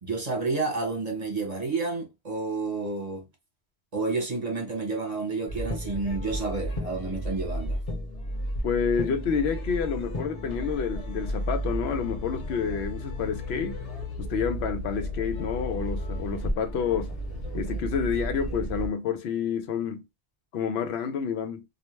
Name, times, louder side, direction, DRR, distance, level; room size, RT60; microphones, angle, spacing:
voice 1, 0.0-3.2 3.9-7.8, right 3 dB, 40° right, 1.0 m, -30 dB
sound 1, 5.5-18.9, equal, 40° left, 0.7 m, -33 dB
voice 2, 8.6-13.7 14.2-17.1 17.5-20.1 20.5-21.6, left 6 dB, 90° left, 0.8 m, -29 dB
2.3 x 2.1 x 3.1 m
omnidirectional pair, 1.0 m